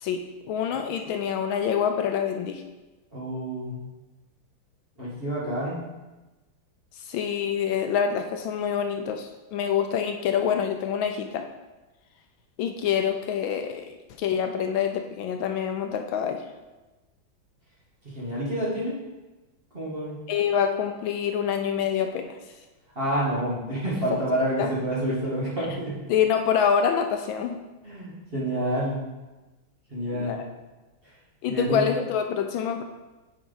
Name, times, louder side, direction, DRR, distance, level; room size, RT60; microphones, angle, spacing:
voice 1, 0.0-2.6 7.0-11.4 12.6-16.4 20.3-22.4 24.1-24.2 24.6-24.7 26.1-27.6 30.1-30.5 31.4-32.8, left 8 dB, 80° left, 5 dB, 1.3 m, -26 dB
voice 2, 3.1-3.9 5.0-5.8 18.0-18.9 19.7-20.1 23.0-26.0 27.8-29.0 29.9-30.4 31.5-31.8, right 1 dB, 30° right, -7 dB, 2.0 m, -28 dB
8.9 x 4.7 x 4.0 m, 1.1 s
omnidirectional pair, 2.3 m